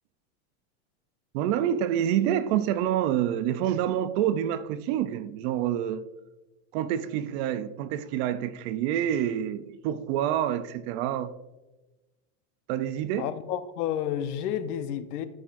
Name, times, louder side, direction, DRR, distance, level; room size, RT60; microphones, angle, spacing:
voice 1, 1.3-6.0 6.7-11.3 12.7-13.3, right 10 dB, 45° right, 0.5 m, -27 dB
voice 2, 13.2-15.3, left 10 dB, 75° left, 0.9 m, -30 dB
13.5 x 6.4 x 2.5 m
supercardioid pair, 140°, 46 cm